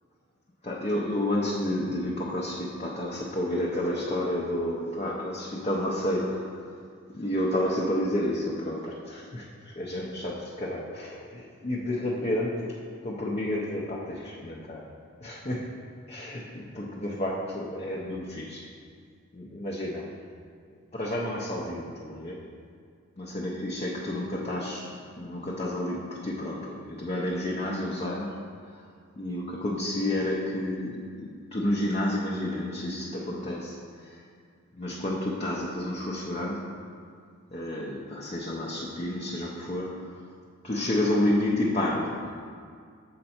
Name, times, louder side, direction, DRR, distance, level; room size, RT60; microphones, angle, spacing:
voice 1, 0.6-6.6 7.1-14.9 15.2-18.6 19.3-20.2 20.9-22.4 23.2-28.6 29.2-34.2 34.7-36.8 37.5-40.2 40.6-42.4, left 1 dB, 30° left, -3 dB, 0.5 m, -30 dB
6.6 x 5.3 x 4.3 m, 2.2 s
head